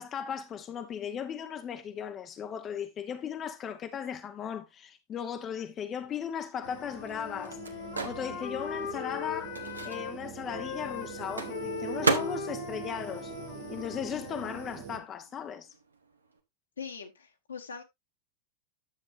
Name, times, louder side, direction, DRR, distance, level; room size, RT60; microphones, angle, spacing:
voice 1, 0.0-13.3 13.7-15.7, left 8 dB, 25° left, 0.7 m, -37 dB
Microwave oven, 6.1-14.2 14.5-16.4, right 4 dB, 75° right, 1.0 m, -37 dB
Wind instrument woodwind instrument, 6.5-10.1 10.5-14.8, left 8 dB, 50° left, 1.3 m, -40 dB
sound 1, 6.6-15.0, right 10 dB, 45° right, 1.0 m, -43 dB
voice 2, 16.8-17.8, left 6 dB, 70° left, 1.4 m, -41 dB
10.0 x 7.3 x 2.6 m
figure-of-eight pair, 90°, 0 cm